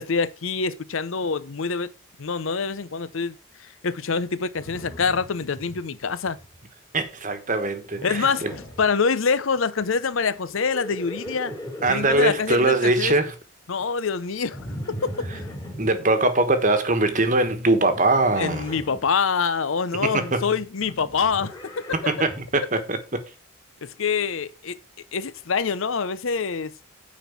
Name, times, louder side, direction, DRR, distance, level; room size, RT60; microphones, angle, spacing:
voice 1, 0.0-1.9 2.2-3.3 3.6-6.4 8.0-8.4 8.8-11.5 11.9-13.2 13.7-14.6 14.9-15.5 18.4-21.9 23.8-24.8 25.1-26.7, left 5 dB, 70° left, 0.6 m, -25 dB
Livestock farm animals working animals, 4.5-5.8 6.1-6.6 7.9-8.9 10.5-12.2 14.5-15.9 17.9-19.0 20.8-22.5, equal, 15° left, 2.6 m, -38 dB
voice 2, 6.9-8.5 11.8-13.3 15.8-18.7 20.0-20.4 22.1-23.2, right 2 dB, 35° right, 1.3 m, -22 dB
9.4 x 4.3 x 7.1 m
head